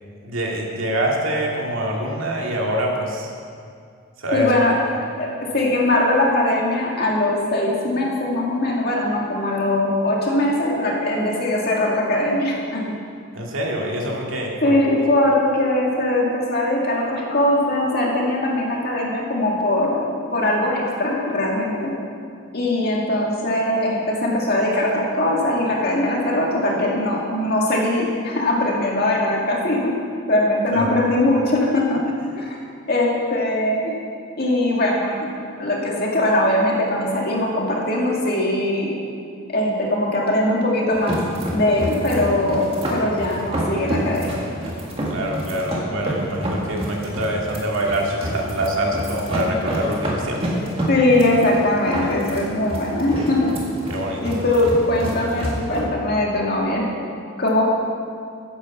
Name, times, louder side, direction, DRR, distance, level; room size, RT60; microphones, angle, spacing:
voice 1, 0.2-3.3 4.2-4.5 13.3-14.8 30.7-30.9 45.0-50.6 53.9-54.4, right 1 dB, 75° right, -1 dB, 2.1 m, -25 dB
voice 2, 4.3-5.3 5.5-12.8 14.6-21.8 22.5-29.9 30.3-32.0 32.4-32.6 32.9-34.0 34.4-35.3 35.6-39.0 39.5-41.2 41.5-44.5 50.9-53.5 54.2-56.9 57.4-57.6, left 1 dB, 45° left, -2 dB, 2.1 m, -21 dB
sound 1, 40.9-55.8, equal, 25° right, 1.9 m, -28 dB
10.5 x 8.8 x 7.1 m, 2.3 s
head